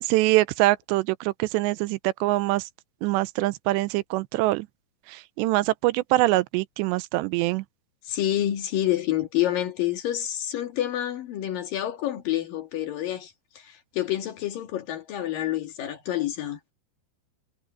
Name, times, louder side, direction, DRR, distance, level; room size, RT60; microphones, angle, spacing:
voice 1, 0.0-2.6 3.0-4.7 5.1-7.6, right 19 dB, 90° right, 2.8 m, -24 dB
voice 2, 8.1-13.3 13.6-16.6, left 13 dB, 60° left, 3.0 m, -28 dB
omnidirectional pair, 5.0 m